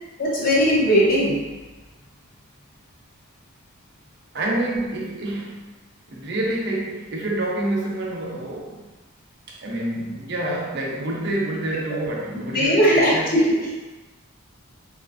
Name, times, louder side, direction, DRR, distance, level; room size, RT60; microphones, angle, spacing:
voice 1, 0.2-1.4 11.9-12.0 12.5-13.6, equal, 40° left, -5 dB, 0.8 m, -18 dB
voice 2, 4.3-5.7 6.1-8.9 9.5-13.4, right 1 dB, 50° right, -2 dB, 0.6 m, -28 dB
4.9 x 2.4 x 2.5 m, 1.2 s
head